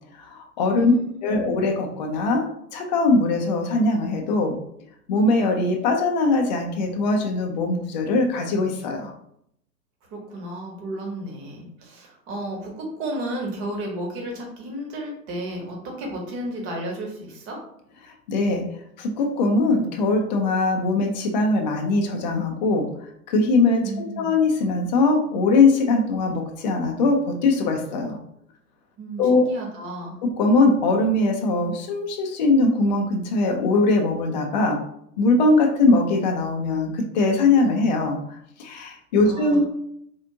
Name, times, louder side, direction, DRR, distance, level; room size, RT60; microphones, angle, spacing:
voice 1, 0.2-0.9 1.2-4.6 5.1-9.1 18.0-18.7 19.0-22.9 23.3-28.2 29.2-29.5 30.2-34.8 35.2-38.2 38.6-39.7, left 3 dB, 30° left, 2 dB, 0.3 m, -21 dB
voice 2, 0.8-1.5 10.1-17.6 23.8-24.3 29.0-30.2 39.2-39.6, right 1 dB, 30° right, 0 dB, 1.0 m, -33 dB
3.5 x 2.4 x 2.7 m, 0.73 s
hypercardioid pair, 115°, 49 cm